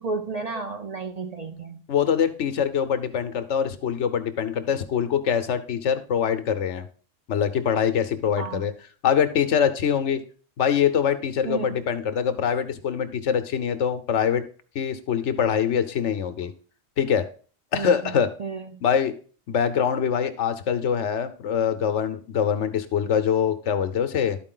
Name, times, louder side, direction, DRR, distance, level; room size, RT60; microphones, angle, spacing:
voice 1, 0.0-1.8 8.4-8.6 11.4-11.7 17.7-18.8, right 4 dB, 45° right, 5 dB, 0.6 m, -32 dB
voice 2, 1.9-6.9 7.3-8.7 9.0-10.2 10.6-14.4 14.7-16.5 17.0-17.2 17.7-18.3 18.8-19.1 19.5-24.4, left 8 dB, 75° left, 10 dB, 1.1 m, -24 dB
12.0 x 4.5 x 3.8 m, 0.40 s
omnidirectional pair, 1.2 m